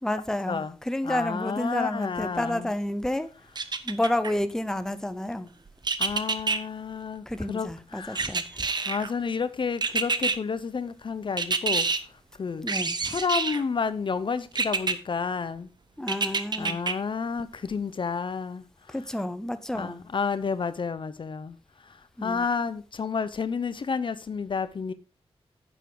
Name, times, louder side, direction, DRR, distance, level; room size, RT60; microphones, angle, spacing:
voice 1, 0.0-3.3 3.8-5.5 7.3-8.7 12.6-13.1 16.0-16.8 18.9-20.0 22.2-22.5, left 1 dB, 5° left, 0.7 m, -30 dB
voice 2, 1.0-2.7 6.0-8.3 8.9-11.9 12.4-12.7 13.0-15.7 16.6-18.6 19.7-21.6 21.8-24.9, left 5 dB, 50° left, 0.6 m, -30 dB
sound 1, 3.5-4.3 5.8-6.6 8.1-9.1 9.8-10.4 11.4-12.0 12.7-13.6 14.5-14.9 16.1-16.9 17.4-17.5, right 4 dB, 45° right, 0.8 m, -27 dB
9.9 x 6.9 x 3.8 m
wide cardioid pair, 95°, 11 cm